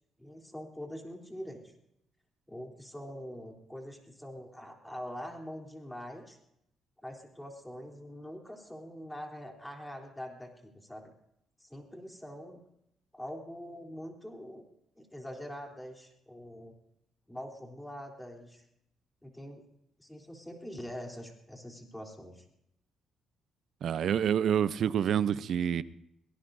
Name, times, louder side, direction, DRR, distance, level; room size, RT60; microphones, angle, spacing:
voice 1, 0.2-1.6 2.5-6.4 7.0-11.1 11.6-12.6 13.1-14.6 15.0-16.7 17.3-18.6 19.2-19.6 20.0-22.4, equal, 5° left, 3.4 m, -44 dB
voice 2, 23.8-25.8, right 9 dB, 65° right, 0.6 m, -27 dB
23.5 x 18.0 x 2.7 m
cardioid pair, 90°, 0 cm